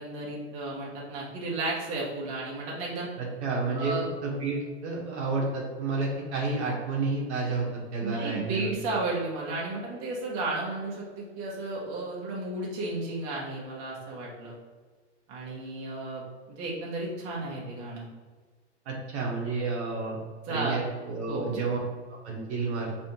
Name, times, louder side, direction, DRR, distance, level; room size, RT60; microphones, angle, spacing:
voice 1, 0.0-3.1 3.7-4.1 8.0-14.5 15.3-16.2 16.5-18.1 20.5-20.8 21.3-21.6, right 2 dB, 45° right, -4 dB, 1.3 m, -33 dB
voice 2, 3.2-4.0 4.2-8.8 18.8-20.2 20.5-21.8 22.2-22.9, right 3 dB, 65° right, -3 dB, 1.5 m, -30 dB
5.0 x 3.4 x 2.9 m, 1.4 s
hypercardioid pair, 120°, 36 cm